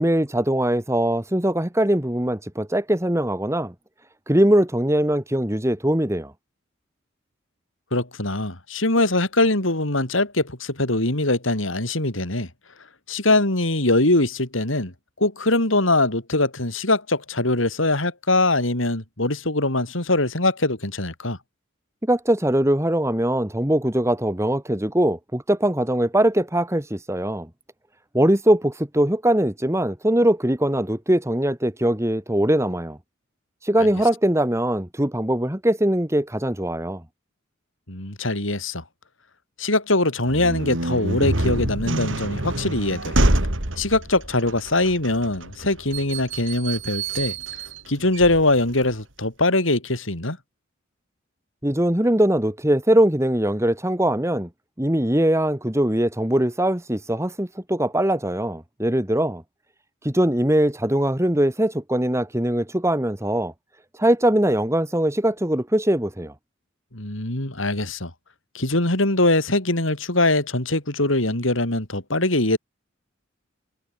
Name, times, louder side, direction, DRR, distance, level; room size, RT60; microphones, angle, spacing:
voice 1, 0.0-3.7 4.3-6.3 22.0-27.5 28.1-33.0 33.6-37.0 51.6-54.5 54.8-59.4 60.0-63.5 63.9-66.3, right 1 dB, 15° right, 2.0 m, -21 dB
voice 2, 7.9-12.5 13.1-21.4 33.8-33.9 37.9-38.8 39.6-43.2 43.8-47.3 47.9-50.4 66.9-68.1 68.5-72.6, left 2 dB, 75° left, 4.5 m, -22 dB
sound 1, 40.2-48.9, right 1 dB, 70° right, 3.6 m, -26 dB
head